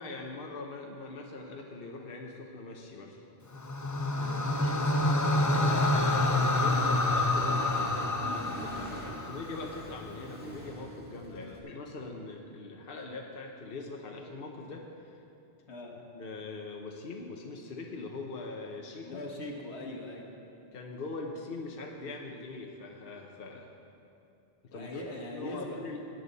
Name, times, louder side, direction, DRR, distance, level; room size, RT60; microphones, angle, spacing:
voice 1, 0.0-3.2 5.8-15.2 15.9-19.2 20.7-23.7 24.6-24.9 25.3-26.0, left 3 dB, 60° left, 1 dB, 1.1 m, -42 dB
sound 1, 3.5-9.8, left 2 dB, 25° left, 0.4 m, -28 dB
voice 2, 4.1-6.2 6.6-6.9 8.5-9.1 11.3-11.6 15.7-15.9 19.0-20.3 24.7-25.8, left 2 dB, 90° left, 0 dB, 1.7 m, -42 dB
Accelerating revving vroom, 6.4-11.6, right 1 dB, 10° right, 1.8 m, -44 dB
17.5 x 9.3 x 4.1 m, 2.6 s
omnidirectional pair, 1.1 m